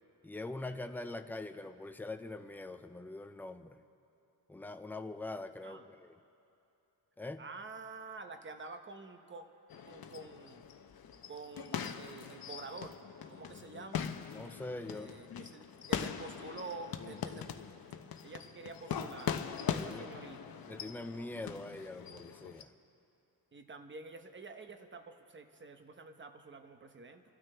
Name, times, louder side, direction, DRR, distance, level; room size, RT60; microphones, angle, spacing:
voice 1, 0.2-3.8 4.5-6.1 7.2-7.4 14.3-15.2 19.7-20.0 20.7-22.7, left 2 dB, 5° left, 8 dB, 0.4 m, -43 dB
voice 2, 7.4-9.5 9.9-10.6 11.3-13.0 13.3-14.1 14.9-17.5 18.2-19.4 19.7-20.4 23.5-27.2, right 3 dB, 30° right, 7 dB, 0.8 m, -48 dB
sound 1, 9.7-22.6, left 8 dB, 60° left, 0.7 m, -41 dB
29.0 x 12.5 x 3.3 m, 2.8 s
wide cardioid pair, 155°, 42 cm